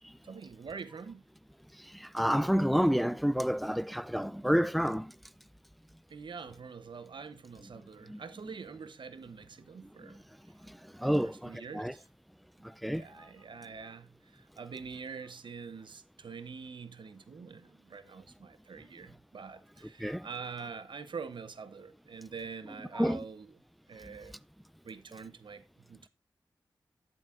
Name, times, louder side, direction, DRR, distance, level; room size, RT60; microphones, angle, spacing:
voice 1, 0.2-1.2 6.1-10.2 11.1-12.0 12.9-23.4 23.9-24.4 24.8-25.6 25.9-26.1, right 5 dB, 70° right, 0.8 m, -45 dB
voice 2, 1.7-5.2 7.8-8.2 10.0-10.2 10.7-11.9 12.6-13.3 20.0-20.3 22.9-23.2 24.1-24.2, equal, ahead, 0.4 m, -30 dB
11.5 x 7.7 x 2.5 m
cardioid pair, 50°, 8 cm